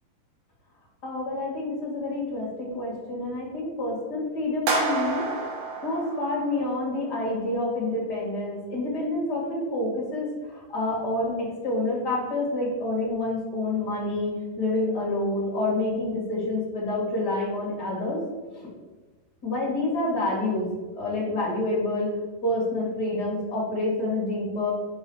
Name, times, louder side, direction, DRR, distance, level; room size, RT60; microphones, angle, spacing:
voice 1, 1.0-5.3 5.8-18.2 18.5-18.7 19.4-20.7 20.9-22.1 22.4-24.7, left 2 dB, 40° left, -4 dB, 1.6 m, -28 dB
sound 1, 4.7-6.9, right 3 dB, 60° right, 2.0 m, -29 dB
5.5 x 5.2 x 4.7 m, 1.3 s
omnidirectional pair, 4.6 m